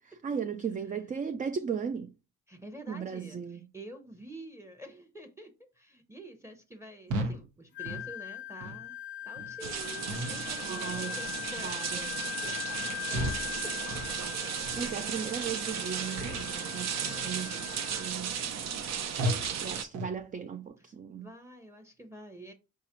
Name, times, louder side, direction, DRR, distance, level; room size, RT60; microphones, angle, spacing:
voice 1, 0.0-2.1 2.9-3.6 10.6-11.2 11.6-12.1 14.7-18.4 19.6-21.3, right 7 dB, 30° right, 0.4 m, -37 dB
voice 2, 2.5-8.9 9.2-13.8 16.9-17.4 20.8-22.5, right 1 dB, 10° right, 0.8 m, -48 dB
sound 1, 7.1-7.4 7.8-8.1 8.6-8.8 9.4-9.5 10.1-10.5 10.8-11.1 11.6-11.8 12.3-12.5 13.1-13.5 13.9-14.2 14.6-14.8 15.4-15.6 16.1-16.5 16.9-17.2 17.7-17.9 18.4-18.5 19.2-19.5 19.9-20.2, equal, 85° right, 1.1 m, -35 dB
Wind instrument woodwind instrument, 7.7-18.1, left 13 dB, 40° left, 0.5 m, -41 dB
sound 2, 9.6-19.8, right 8 dB, 60° right, 0.7 m, -35 dB
5.1 x 2.4 x 4.3 m
cardioid pair, 90°, 30 cm